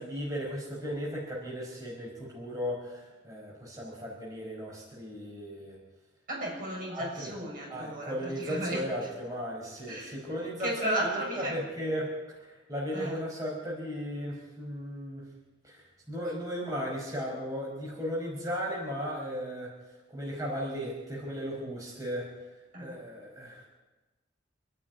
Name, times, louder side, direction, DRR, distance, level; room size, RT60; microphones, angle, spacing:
voice 1, 0.0-5.8 6.9-7.3 7.7-12.1 12.4-15.2 15.6-19.7 20.1-22.3 22.8-23.7, equal, 20° right, -4 dB, 5.2 m, -36 dB
voice 2, 6.3-8.9 9.9-10.2 10.6-11.6 12.9-13.2 22.7-23.0, right 1 dB, 45° right, -1 dB, 7.2 m, -34 dB
28.0 x 10.0 x 9.5 m, 1.1 s
head